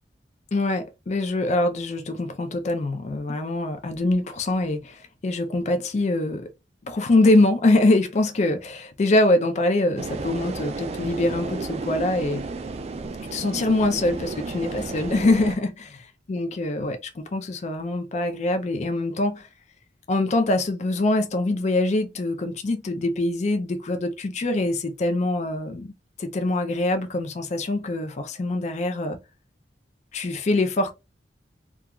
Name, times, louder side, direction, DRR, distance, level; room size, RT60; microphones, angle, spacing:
voice 1, 0.5-6.5 6.9-12.4 13.3-19.5 20.1-25.9 26.2-29.2 30.1-30.9, left 2 dB, 40° left, 0.4 m, -24 dB
sound 1, 10.0-15.6, right 3 dB, 35° right, 0.3 m, -33 dB
2.3 x 2.3 x 2.9 m
head